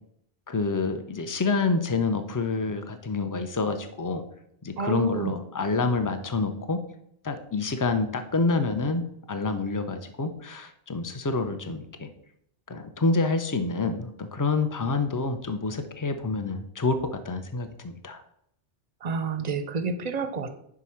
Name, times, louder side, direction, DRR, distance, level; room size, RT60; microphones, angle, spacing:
voice 1, 0.5-4.2 4.6-6.8 7.2-9.0 9.3-12.1 12.7-18.2, left 3 dB, 25° left, 8 dB, 0.5 m, -27 dB
voice 2, 4.8-5.3 19.0-20.6, right 4 dB, 45° right, 10 dB, 0.6 m, -29 dB
5.2 x 4.8 x 5.7 m, 0.73 s
omnidirectional pair, 1.0 m